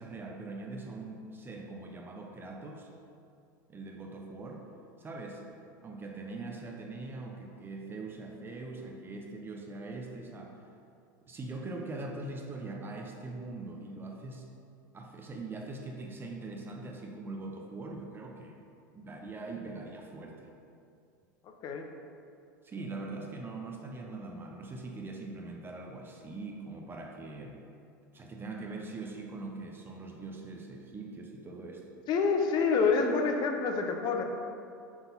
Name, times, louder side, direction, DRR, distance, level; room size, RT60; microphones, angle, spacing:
voice 1, 0.0-2.9 3.7-4.7 5.0-5.4 5.8-10.6 11.3-14.5 14.9-18.6 18.9-20.5 22.6-27.6 28.1-31.9, right 3 dB, 20° right, 1 dB, 0.8 m, -42 dB
voice 2, 32.1-34.2, left 4 dB, 40° left, 3 dB, 0.9 m, -27 dB
6.2 x 3.9 x 5.4 m, 2.5 s
hypercardioid pair, 105°, 10 cm